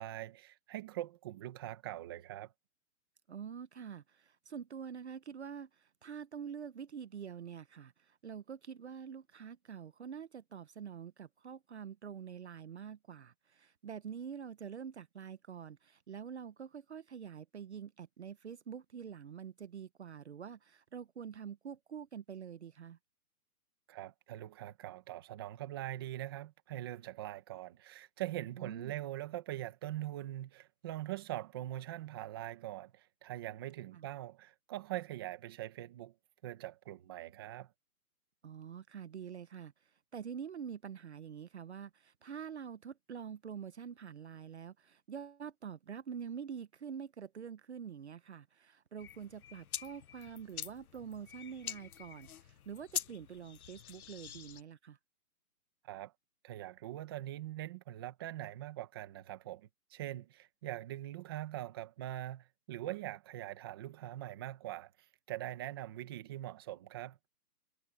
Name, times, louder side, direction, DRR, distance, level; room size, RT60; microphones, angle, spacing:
voice 1, 0.0-2.5 23.9-36.1 36.4-37.7 55.8-56.1 56.4-67.2, right 14 dB, 15° right, 1.4 m, -43 dB
voice 2, 3.3-23.0 28.6-29.0 33.9-34.1 38.4-55.0, right 7 dB, 45° right, 1.1 m, -46 dB
sound 1, 49.0-54.6, left 9 dB, 65° left, 0.8 m, -45 dB
hypercardioid pair, 175°, 46 cm